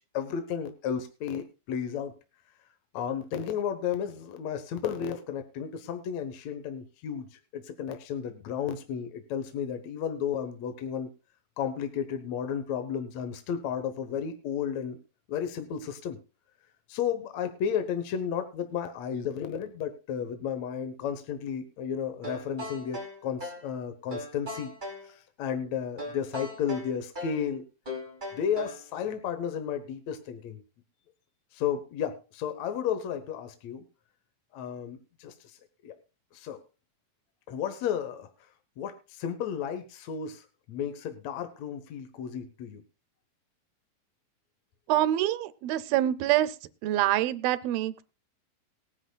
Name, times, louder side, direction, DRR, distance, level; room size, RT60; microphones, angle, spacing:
voice 1, 0.1-2.1 2.9-11.1 11.6-15.0 15.3-16.2 16.9-24.7 25.0-27.6 28.3-30.6 31.5-33.8 34.5-35.6 35.8-35.9 36.3-36.6 37.5-38.3 38.8-42.8, left 8 dB, 60° left, 7 dB, 2.0 m, -33 dB
sound 1, 22.2-23.7 24.1-25.1 26.0-27.4 27.9-28.9, left 1 dB, 15° right, 2.1 m, -39 dB
voice 2, 44.9-46.6 46.8-48.0, right 13 dB, 90° right, 14 dB, 2.6 m, -26 dB
20.0 x 10.0 x 2.3 m, 0.32 s
omnidirectional pair, 4.1 m